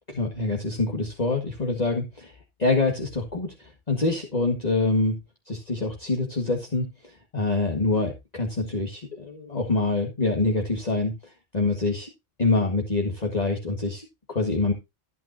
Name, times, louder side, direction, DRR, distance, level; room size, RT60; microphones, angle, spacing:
voice 1, 0.1-5.2 5.5-12.1 12.4-14.7, left 3 dB, 35° left, 1.9 m, -26 dB
14.5 x 8.7 x 2.7 m
omnidirectional pair, 1.3 m